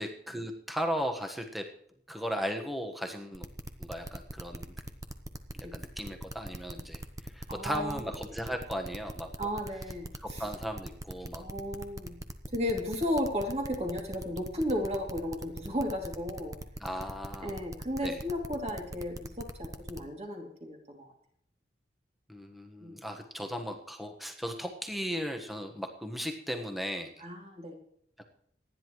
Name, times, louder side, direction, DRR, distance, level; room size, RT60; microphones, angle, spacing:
voice 1, 0.0-1.7 2.1-3.5 3.8-4.7 5.6-7.0 7.3-9.3 10.2-11.4 16.8-17.5 18.0-18.2 22.3-27.1, equal, ahead, 4 dB, 1.3 m, -36 dB
sound 1, 3.3-20.0, right 1 dB, 20° right, 0.8 m, -41 dB
voice 2, 7.5-8.1 9.4-10.5 11.4-12.2 12.5-16.6 17.4-21.1 22.8-23.0 27.2-27.8, left 1 dB, 35° right, 1 dB, 2.7 m, -34 dB
27.0 x 10.0 x 3.1 m, 0.68 s
head